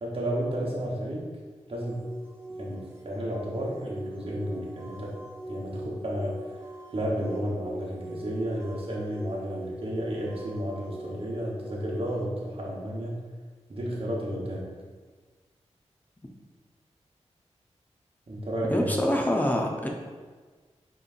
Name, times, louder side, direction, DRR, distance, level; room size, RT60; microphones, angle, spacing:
voice 1, 0.0-1.3 1.7-2.1 2.5-5.1 5.5-6.4 6.9-13.2 13.7-14.7 18.3-19.0, equal, 50° right, -4 dB, 1.0 m, -32 dB
sound 1, 1.8-12.2, right 1 dB, 20° right, 1.1 m, -42 dB
voice 2, 18.7-19.9, left 1 dB, 15° left, 0 dB, 0.6 m, -25 dB
5.2 x 3.2 x 2.5 m, 1.4 s
cardioid pair, 60°, 12 cm